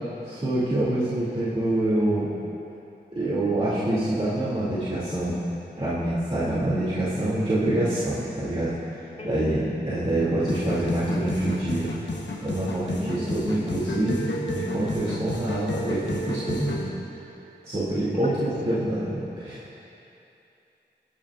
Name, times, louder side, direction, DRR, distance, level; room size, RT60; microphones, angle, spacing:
voice 1, 0.2-2.3 3.1-5.4 5.8-11.9 12.4-16.9 17.6-18.4 18.7-19.7, right 1 dB, 35° right, -11 dB, 2.5 m, -26 dB
sound 1, 10.5-16.9, left 1 dB, 75° left, 1.1 m, -32 dB
voice 2, 12.9-13.5 18.1-18.8, left 1 dB, 35° left, -9 dB, 3.0 m, -37 dB
21.5 x 9.8 x 2.5 m, 2.8 s
wide cardioid pair, 80°, 19 cm